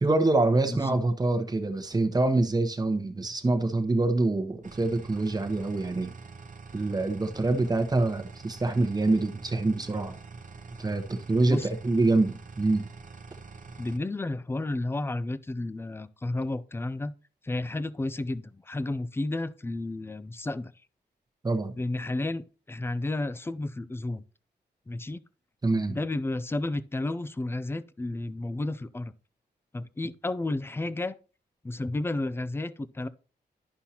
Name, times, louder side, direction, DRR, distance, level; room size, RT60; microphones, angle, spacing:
voice 1, 0.0-6.1 6.7-10.2 10.8-12.9 21.4-21.7 25.6-26.0, right 2 dB, 20° right, 1.0 m, -25 dB
sound 1, 4.6-14.0, right 4 dB, 50° right, 0.8 m, -46 dB
voice 2, 13.8-17.1 17.4-20.7 21.8-24.2 24.9-25.2 25.9-29.1 29.7-31.1 31.6-33.1, left 2 dB, 15° left, 0.4 m, -32 dB
11.5 x 5.5 x 2.9 m
wide cardioid pair, 125°, 17 cm